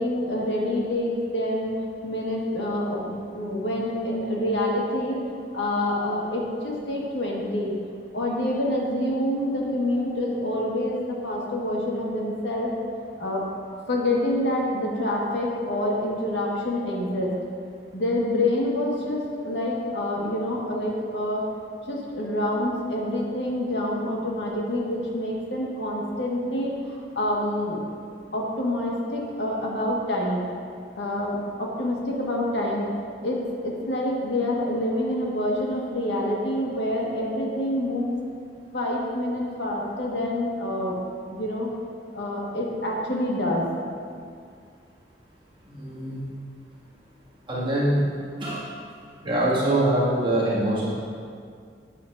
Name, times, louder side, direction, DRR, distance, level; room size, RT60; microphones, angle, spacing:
voice 1, 0.0-1.7 2.0-5.2 5.5-7.7 8.1-12.7 13.2-13.5 13.9-17.3 17.9-21.5 21.9-27.8 28.3-30.4 31.0-38.2 38.7-41.0 41.3-41.7 42.1-43.7, left 1 dB, 85° left, -3 dB, 1.7 m, -27 dB
voice 2, 45.7-46.2 47.5-48.0 48.4-48.6 49.2-50.9, right 1 dB, 30° right, -9 dB, 2.2 m, -23 dB
11.0 x 8.3 x 2.7 m, 2.2 s
head